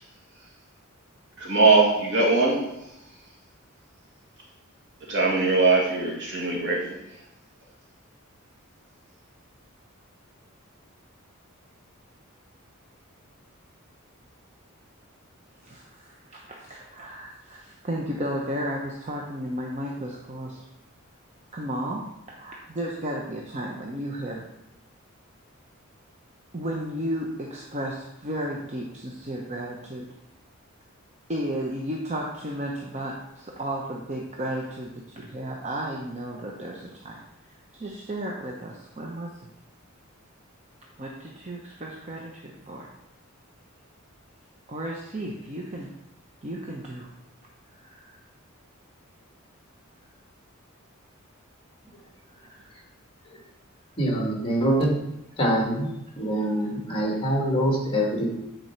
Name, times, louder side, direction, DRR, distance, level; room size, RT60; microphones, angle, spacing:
voice 1, 1.4-2.6 5.1-7.0, right 3 dB, 60° right, -2 dB, 2.0 m, -21 dB
voice 2, 15.6-20.6 21.5-24.4 26.5-30.1 31.3-37.2 37.7-39.3 41.0-42.9 44.7-45.9 46.4-47.1 47.8-48.2 52.4-52.8, right 1 dB, 35° right, -1 dB, 0.8 m, -33 dB
voice 3, 54.0-55.0 55.4-55.9 56.2-58.3, right 1 dB, 25° left, -1 dB, 1.9 m, -24 dB
9.3 x 4.5 x 4.5 m, 0.85 s
head